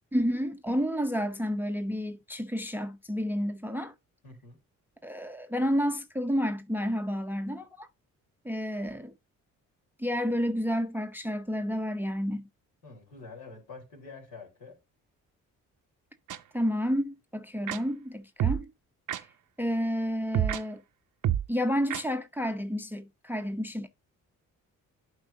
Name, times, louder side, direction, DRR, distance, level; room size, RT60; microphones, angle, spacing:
voice 1, 0.1-3.9 5.0-7.9 8.4-9.1 10.0-12.5 16.5-18.7 19.1-19.3 19.6-20.8 21.5-23.9, equal, 5° right, 0.7 m, -30 dB
voice 2, 4.2-4.6 12.8-14.8, left 4 dB, 70° left, 3.9 m, -47 dB
sound 1, 16.3-16.4 17.7-17.8 18.4-18.6 19.1-19.2 20.3-20.6 21.2-21.5 21.9-22.0, right 10 dB, 50° right, 0.7 m, -27 dB
11.5 x 4.7 x 2.7 m
hypercardioid pair, 40°, 40 cm